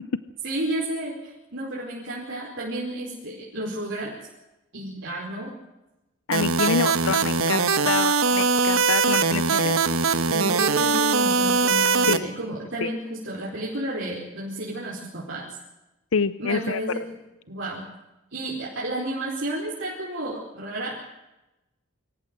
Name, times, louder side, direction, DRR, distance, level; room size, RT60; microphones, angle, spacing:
voice 1, 0.4-4.1 4.7-5.5 10.3-15.4 16.4-17.0 17.5-17.8 18.3-21.1, right 1 dB, 60° right, -5 dB, 4.9 m, -31 dB
voice 2, 6.3-9.8 12.1-12.3 12.8-12.9 16.1-16.8, left 5 dB, 75° left, 14 dB, 0.6 m, -27 dB
sound 1, 6.3-12.2, right 4 dB, 80° right, 1.3 m, -21 dB
25.5 x 15.0 x 7.8 m, 0.97 s
head